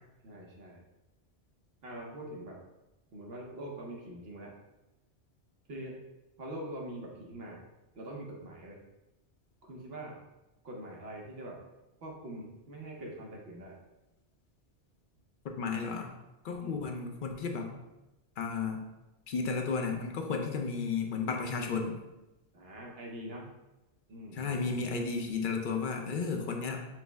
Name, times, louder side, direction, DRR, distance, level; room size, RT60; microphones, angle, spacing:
voice 1, 0.2-0.8 1.8-2.6 3.1-4.6 5.7-6.0 6.4-7.6 7.9-8.8 9.6-10.2 10.6-11.6 12.0-13.8 16.6-16.8 22.5-23.5 24.1-24.9, right 1 dB, 60° right, -1 dB, 1.0 m, -43 dB
voice 2, 15.6-16.1 16.4-17.7 18.4-18.8 19.3-22.0 24.3-26.9, left 4 dB, 60° left, 3 dB, 0.6 m, -33 dB
5.9 x 2.0 x 3.3 m, 0.98 s
omnidirectional pair, 1.2 m